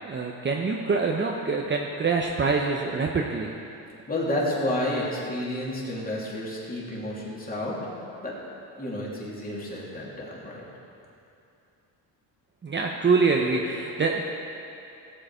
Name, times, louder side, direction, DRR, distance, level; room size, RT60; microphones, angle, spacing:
voice 1, 0.0-3.5 12.6-14.2, right 4 dB, 25° right, 0 dB, 0.8 m, -25 dB
voice 2, 4.1-7.8 8.2-8.3 8.8-10.6, left 1 dB, 20° left, -5 dB, 3.1 m, -30 dB
16.0 x 7.7 x 5.0 m, 2.7 s
cardioid pair, 95°, 41 cm